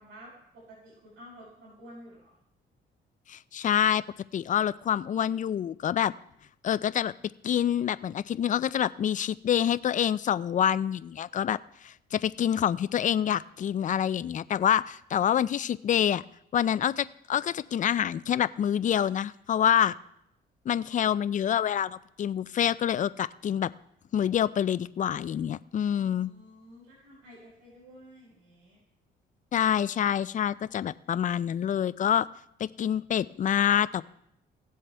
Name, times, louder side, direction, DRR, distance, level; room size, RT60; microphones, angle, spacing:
voice 1, 0.0-2.4 25.8-28.8, equal, 75° right, -9 dB, 5.5 m, -51 dB
voice 2, 3.3-4.0 4.3-6.1 6.6-7.1 7.4-11.6 11.8-16.2 16.5-19.9 20.7-23.7 24.1-26.3 29.5-32.3 32.6-34.0, left 9 dB, 40° left, 17 dB, 0.4 m, -26 dB
17.5 x 7.7 x 3.4 m, 0.75 s
cardioid pair, 90°, 20 cm